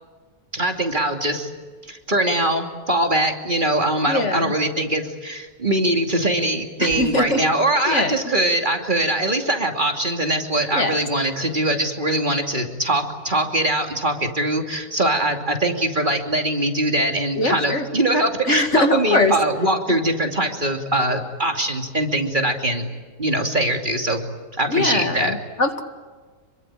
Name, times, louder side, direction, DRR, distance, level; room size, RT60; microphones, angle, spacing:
voice 1, 0.5-1.5 1.9-22.9 23.2-24.2 24.6-25.3, right 1 dB, 30° right, 3 dB, 2.9 m, -22 dB
voice 2, 4.1-4.5 6.8-7.4 7.9-8.3 10.7-11.0 17.4-17.8 18.4-19.3 24.7-25.8, left 2 dB, 50° left, 6 dB, 2.2 m, -22 dB
26.5 x 23.5 x 9.0 m, 1.5 s
omnidirectional pair, 1.6 m